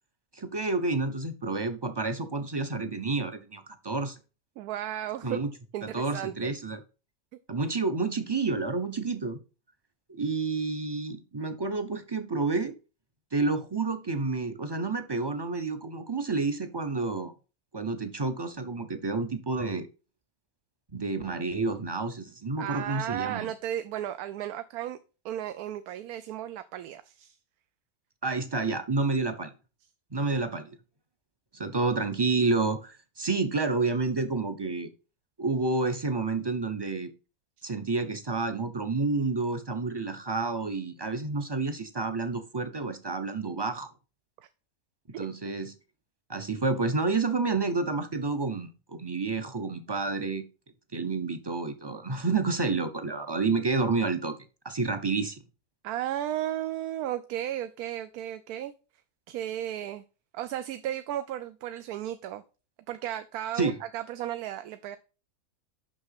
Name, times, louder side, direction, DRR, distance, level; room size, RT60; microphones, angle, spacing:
voice 1, 0.3-4.2 5.2-5.5 5.8-6.8 7.5-9.4 10.1-12.8 13.3-17.3 17.7-19.9 20.9-23.5 28.2-29.5 30.1-30.7 31.5-34.9 35.4-37.1 37.6-43.9 45.2-45.7 46.3-50.4 50.9-54.3 54.6-55.4 63.6-63.8, right 3 dB, 30° right, 0.5 m, -29 dB
voice 2, 4.6-5.4 5.7-6.5 22.6-25.0 25.2-27.3 45.1-45.3 55.8-58.7 59.3-60.0 60.3-62.4 62.9-65.0, right 12 dB, 80° right, 1.1 m, -34 dB
6.4 x 6.1 x 5.7 m
omnidirectional pair, 1.6 m